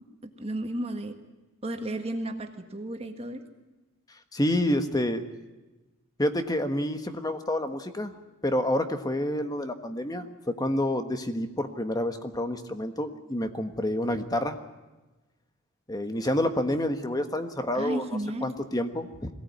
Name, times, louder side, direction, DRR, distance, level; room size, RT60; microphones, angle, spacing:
voice 1, 0.4-1.2 1.6-3.4 17.7-18.5, right 1 dB, 25° right, 6 dB, 1.6 m, -33 dB
voice 2, 4.3-5.2 6.2-8.1 8.4-14.6 15.9-19.3, left 1 dB, 15° left, 8 dB, 1.3 m, -28 dB
22.5 x 17.5 x 9.5 m, 1.1 s
head